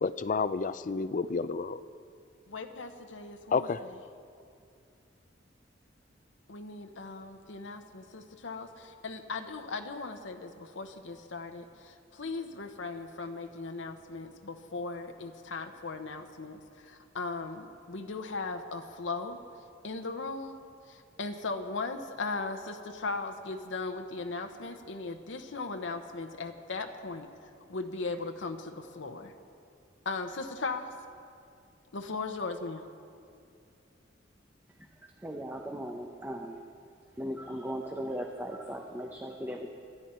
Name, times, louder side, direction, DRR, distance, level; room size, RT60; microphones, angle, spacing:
voice 1, 0.0-1.8 3.5-3.8, left 4 dB, 45° left, 14 dB, 0.4 m, -30 dB
voice 2, 2.5-3.9 6.5-19.4 19.8-20.6 20.9-27.3 27.7-29.3 30.0-30.9 31.9-32.9, left 3 dB, 75° left, 5 dB, 0.9 m, -38 dB
voice 3, 35.2-36.6 37.2-39.7, equal, 10° right, 2 dB, 0.8 m, -37 dB
25.0 x 11.0 x 4.4 m, 2.4 s
head